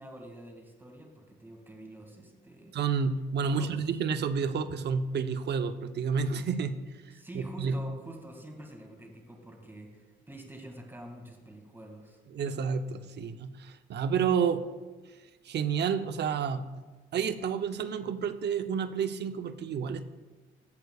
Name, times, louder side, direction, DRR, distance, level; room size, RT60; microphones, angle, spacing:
voice 1, 0.0-2.8 3.4-3.8 7.1-12.2, right 1 dB, 10° right, 2 dB, 2.1 m, -47 dB
voice 2, 2.7-6.8 7.3-7.8 12.3-14.7 15.4-16.6 17.1-20.0, right 6 dB, 60° right, 9 dB, 0.7 m, -30 dB
17.5 x 8.1 x 2.4 m, 1.3 s
cardioid pair, 90°, 20 cm